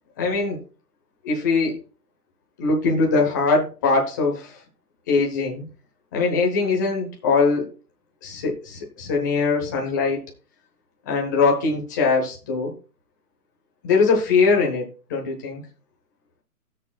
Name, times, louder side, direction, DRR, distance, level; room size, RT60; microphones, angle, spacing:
voice 1, 0.2-0.6 1.2-1.8 2.6-4.6 5.1-5.6 6.1-7.7 8.2-10.2 11.1-12.7 13.8-15.6, left 4 dB, 15° left, 0 dB, 0.9 m, -21 dB
19.0 x 6.5 x 2.3 m, 0.34 s
hypercardioid pair, 165°, 45 cm